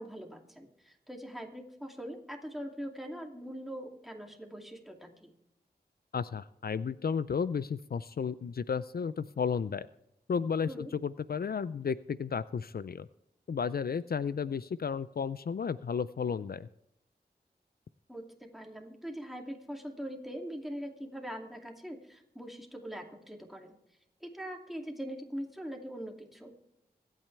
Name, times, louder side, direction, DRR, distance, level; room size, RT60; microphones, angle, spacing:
voice 1, 0.0-5.3 10.7-10.9 18.1-18.2 18.5-23.7 24.2-26.5, equal, ahead, 2 dB, 2.5 m, -42 dB
voice 2, 6.1-9.9 10.3-13.1 13.5-16.7, left 6 dB, 70° left, 16 dB, 0.4 m, -33 dB
24.5 x 9.1 x 3.3 m, 0.83 s
wide cardioid pair, 65°, 17 cm